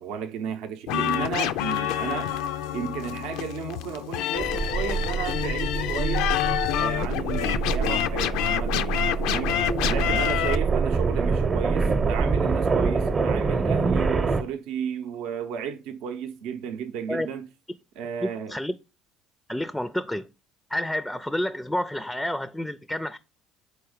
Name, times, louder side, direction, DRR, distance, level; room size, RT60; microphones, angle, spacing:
voice 1, 0.0-2.3 2.7-6.3 6.7-9.5 9.9-17.5 18.0-18.6, right 7 dB, 70° right, 0.6 m, -33 dB
sound 1, 0.9-10.6, left 11 dB, 75° left, 0.4 m, -27 dB
sound 2, 4.4-14.4, right 4 dB, 40° right, 0.8 m, -26 dB
voice 2, 18.2-18.7 19.5-20.3 20.7-23.2, left 1 dB, 5° left, 0.4 m, -29 dB
4.7 x 4.1 x 5.0 m
hypercardioid pair, 70°, 0 cm